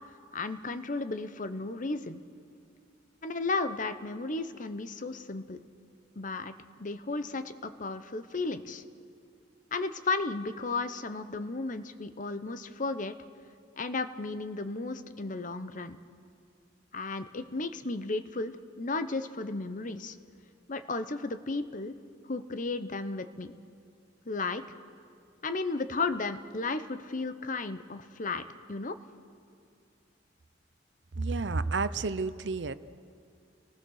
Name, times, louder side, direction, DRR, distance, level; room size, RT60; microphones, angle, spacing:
voice 1, 0.3-2.2 3.2-5.6 6.2-6.5 6.8-8.8 9.7-13.1 13.8-16.0 16.9-20.2 20.7-21.9 22.2-23.5 24.3-24.8 25.4-28.4 28.7-29.0, left 3 dB, 45° left, 11 dB, 0.9 m, -34 dB
voice 2, 31.2-32.7, right 3 dB, 75° right, 14 dB, 0.7 m, -30 dB
29.5 x 19.0 x 6.5 m, 2.4 s
head